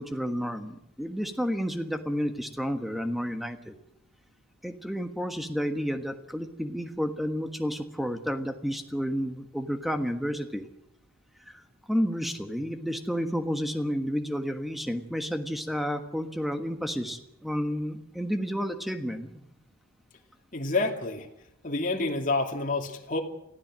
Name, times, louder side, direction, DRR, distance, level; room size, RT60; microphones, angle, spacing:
voice 1, 0.0-3.7 4.6-10.7 11.5-11.6 11.9-19.5, equal, ahead, 7 dB, 1.3 m, -31 dB
voice 2, 20.5-21.3 21.6-23.2, left 3 dB, 35° left, 1 dB, 2.5 m, -28 dB
23.5 x 15.0 x 7.6 m, 0.81 s
head